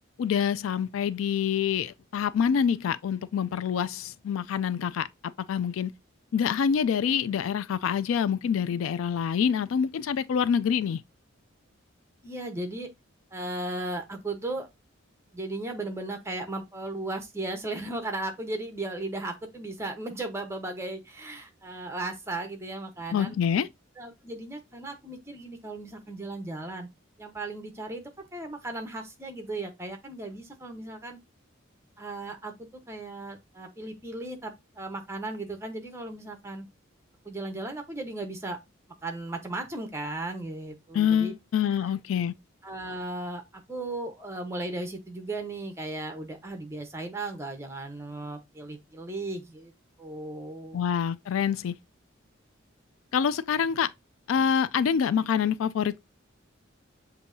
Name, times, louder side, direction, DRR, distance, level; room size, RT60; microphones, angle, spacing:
voice 1, 0.2-5.1 5.5-5.9 6.3-11.0 23.1-23.7 40.9-42.3 50.7-51.8 53.1-53.9 54.3-56.0, left 7 dB, 80° left, 0.3 m, -26 dB
voice 2, 12.2-12.9 13.3-14.7 15.3-23.4 24.0-26.9 27.2-31.2 32.0-36.7 37.2-38.6 39.0-41.3 42.6-49.7 50.0-50.8, right 2 dB, 15° right, 0.9 m, -36 dB
7.0 x 2.7 x 2.6 m
head